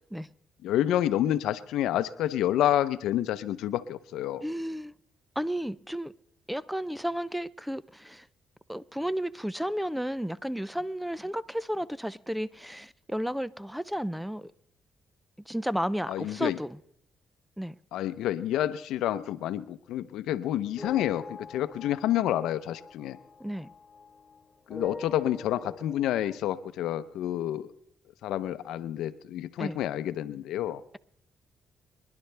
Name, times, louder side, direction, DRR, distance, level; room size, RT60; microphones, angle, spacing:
voice 1, 0.6-4.4 16.1-16.6 17.9-23.2 24.7-27.7 28.2-30.8, left 12 dB, 85° left, 0.7 m, -29 dB
voice 2, 4.4-4.9 5.4-6.1 6.5-8.3 8.7-14.5 15.5-16.8 17.6-17.8 23.4-23.7 29.6-29.8, equal, ahead, 0.5 m, -33 dB
sound 1, 20.8-24.4 24.7-26.4, left 4 dB, 30° left, 1.2 m, -44 dB
27.5 x 10.5 x 3.4 m
cardioid pair, 75°, 0 cm